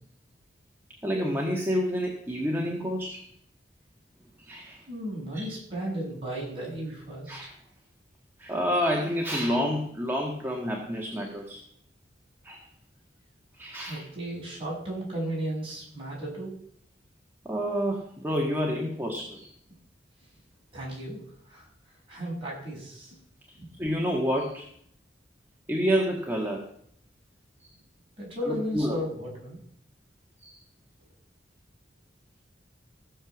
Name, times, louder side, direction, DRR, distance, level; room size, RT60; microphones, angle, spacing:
voice 1, 1.0-3.3 4.4-4.8 5.3-5.4 7.3-7.5 8.4-11.6 12.4-12.6 13.6-14.0 17.4-19.5 23.8-24.7 25.7-26.6 28.4-29.0 30.4-30.6, equal, 10° right, 0 dB, 1.6 m, -28 dB
voice 2, 4.9-7.5 13.8-16.5 20.7-21.7 22.1-23.2 23.6-23.7 28.2-29.6, right 1 dB, 30° right, -4 dB, 7.0 m, -35 dB
16.0 x 6.8 x 7.1 m, 0.64 s
head